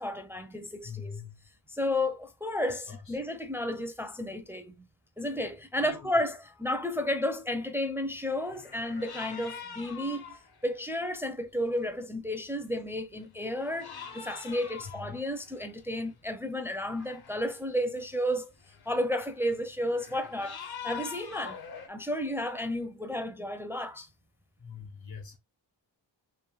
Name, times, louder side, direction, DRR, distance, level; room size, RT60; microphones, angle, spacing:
voice 1, 0.0-1.2 1.7-4.9 5.2-10.4 10.6-18.5 18.9-20.6 20.8-21.6 21.9-24.1, left 1 dB, 5° right, 0.5 m, -32 dB
voice 2, 0.8-1.4 2.9-3.2 5.8-6.1 14.9-15.2 24.6-25.4, left 6 dB, 80° left, 1.4 m, -43 dB
sound 1, 8.3-10.9 11.8-11.9 12.6-12.9 13.2-16.2 16.8-17.6 18.0-21.9, left 6 dB, 55° left, 0.7 m, -45 dB
3.2 x 2.9 x 2.2 m
cardioid pair, 70°, 45 cm